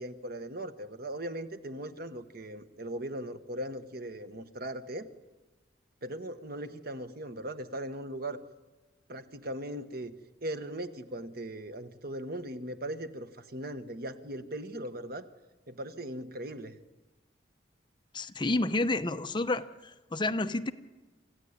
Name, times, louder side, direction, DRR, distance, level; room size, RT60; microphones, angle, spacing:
voice 1, 0.0-5.1 6.0-8.4 9.1-10.1 10.4-15.3 15.7-16.8, right 1 dB, 55° right, 9 dB, 1.3 m, -39 dB
voice 2, 18.1-20.7, left 2 dB, 25° left, 9 dB, 0.7 m, -30 dB
27.0 x 14.5 x 9.7 m, 1.2 s
head